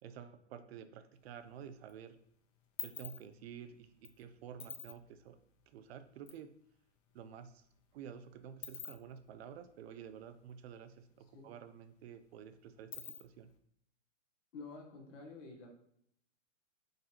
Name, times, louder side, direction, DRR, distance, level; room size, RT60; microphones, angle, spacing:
voice 1, 0.0-2.2 2.8-5.4 5.7-6.5 7.1-7.6 7.9-13.5, right 8 dB, 55° right, 11 dB, 0.5 m, -51 dB
sound 1, 1.1-1.9 2.2-6.4 6.7-6.8 7.1-10.9 11.2-11.3 11.6-13.6, left 9 dB, 45° left, 0.5 m, -49 dB
voice 2, 14.5-15.7, left 3 dB, 70° left, 1 dB, 1.2 m, -49 dB
3.9 x 2.6 x 4.3 m, 0.71 s
hypercardioid pair, 150°, 38 cm